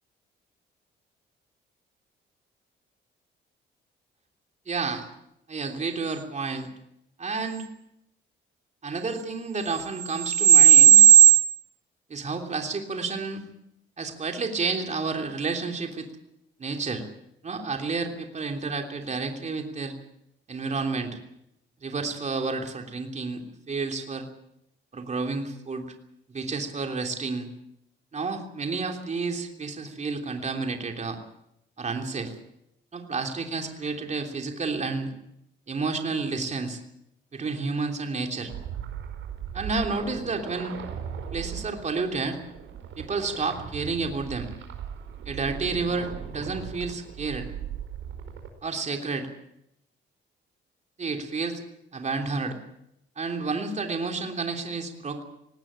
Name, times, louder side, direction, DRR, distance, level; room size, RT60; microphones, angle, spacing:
voice 1, 4.7-5.1 5.5-6.7 7.2-7.6 8.8-11.1 12.1-13.4 14.0-16.1 16.6-17.0 17.4-19.9 20.5-21.2 21.8-24.3 24.9-25.9 26.3-27.5 28.1-31.2 31.8-32.3 32.9-35.1 35.7-36.8 37.3-38.5 39.5-40.7 41.3-42.4 43.0-44.5 45.2-47.5 48.6-49.3 51.0-51.6 51.9-52.6 53.2-55.2, right 6 dB, 35° right, 4 dB, 3.3 m, -26 dB
sound 1, 38.4-48.5, right 8 dB, 75° right, 5.1 m, -38 dB
18.5 x 18.0 x 8.9 m, 0.81 s
cardioid pair, 90°, 20 cm